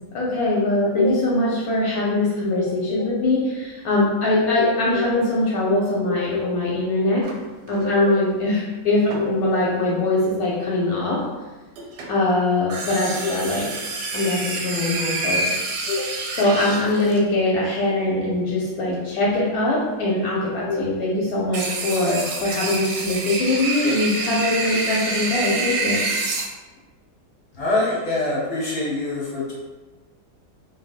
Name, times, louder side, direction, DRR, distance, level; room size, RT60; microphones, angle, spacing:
voice 1, 0.1-7.3 7.7-11.2 12.1-13.7 14.1-15.4 15.9-16.1 16.4-26.0, left 2 dB, 70° left, -4 dB, 1.0 m, -22 dB
sound 1, 7.2-7.8 9.1-9.7 11.8-12.2 12.7-17.2 21.5-26.5, right 3 dB, 85° right, 1.2 m, -27 dB
voice 2, 27.6-29.5, left 2 dB, 45° left, -7 dB, 1.1 m, -24 dB
3.3 x 2.6 x 2.3 m, 1.2 s
omnidirectional pair, 1.7 m